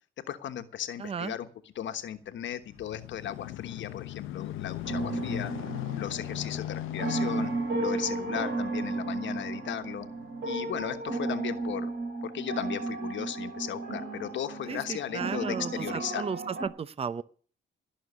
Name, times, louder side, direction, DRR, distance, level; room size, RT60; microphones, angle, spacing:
voice 1, 0.3-1.5 1.7-5.5 6.0-7.5 7.8-10.1 10.4-11.9 12.2-16.2, left 10 dB, 70° left, 8 dB, 1.3 m, -36 dB
voice 2, 1.0-1.3 14.7-17.2, right 6 dB, 30° right, 16 dB, 0.7 m, -35 dB
sound 1, 2.2-11.0 11.6-11.7, left 14 dB, 90° left, 0.8 m, -39 dB
sound 2, 4.8-16.7, right 3 dB, 55° right, 6.0 m, -34 dB
17.5 x 6.4 x 9.5 m, 0.43 s
cardioid pair, 90°, 20 cm